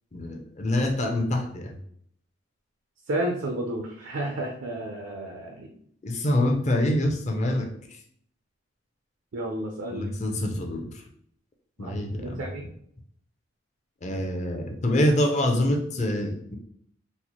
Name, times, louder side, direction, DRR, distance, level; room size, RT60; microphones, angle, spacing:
voice 1, 0.1-1.8 6.0-8.0 9.9-11.0 11.8-12.5 14.0-16.5, left 1 dB, 35° left, 3 dB, 0.5 m, -26 dB
voice 2, 3.1-5.7 9.3-10.1 11.8-12.6, right 1 dB, 75° right, 1 dB, 0.5 m, -32 dB
4.1 x 2.1 x 2.9 m, 0.65 s
head